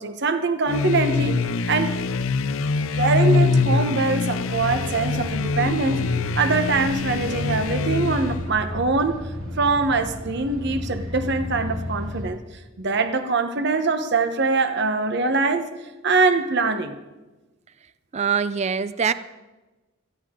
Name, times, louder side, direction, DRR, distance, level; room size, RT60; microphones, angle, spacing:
voice 1, 0.0-1.4 1.7-1.9 2.9-6.0 6.4-9.2 9.6-12.4 12.8-15.7 16.0-17.0, right 3 dB, 55° right, 9 dB, 1.0 m, -23 dB
sound 1, 0.7-8.5, left 4 dB, 75° left, 0.5 m, -24 dB
sound 2, 4.6-12.3, equal, 80° right, 2.2 m, -33 dB
voice 2, 18.1-19.1, right 6 dB, 30° right, 14 dB, 0.4 m, -23 dB
18.5 x 15.0 x 3.7 m, 1.1 s
head